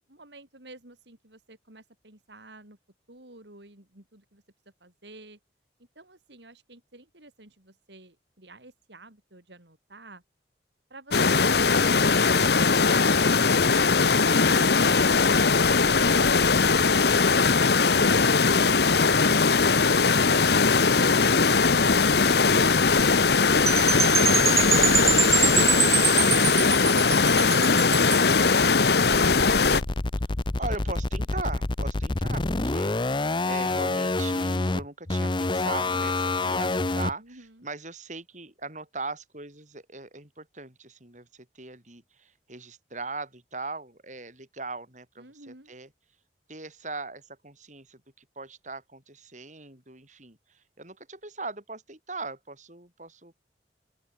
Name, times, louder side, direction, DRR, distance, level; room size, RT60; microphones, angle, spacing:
voice 1, 0.1-2.8 3.1-4.4 4.8-5.4 5.9-10.2 37.2-37.7 45.2-45.7, right 2 dB, 70° right, 4.6 m, -50 dB
sound 1, 11.1-29.8, left 4 dB, 60° left, 1.0 m, -20 dB
Percussion / Wind chime, 23.7-28.3, right 6 dB, 15° right, 0.3 m, -25 dB
sound 2, 29.1-37.1, left 2 dB, 25° left, 0.6 m, -27 dB
voice 2, 30.6-45.9 46.5-53.3, right 3 dB, 40° right, 7.0 m, -40 dB
open air
head